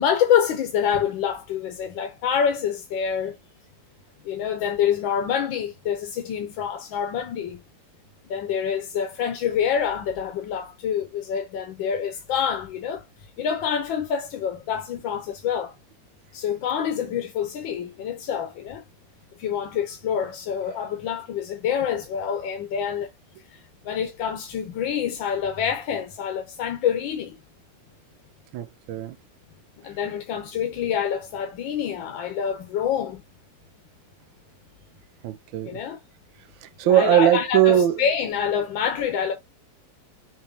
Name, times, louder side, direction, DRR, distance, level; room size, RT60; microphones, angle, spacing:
voice 1, 0.0-3.4 4.2-7.6 8.2-13.0 13.4-15.7 16.3-18.8 19.4-23.1 23.5-27.4 29.8-33.2 35.6-36.0 36.8-39.3, left 8 dB, 90° left, 1.6 m, -26 dB
voice 2, 28.5-29.2 35.2-35.8 36.6-38.0, right 11 dB, 85° right, 1.3 m, -20 dB
6.2 x 2.8 x 2.8 m
omnidirectional pair, 2.0 m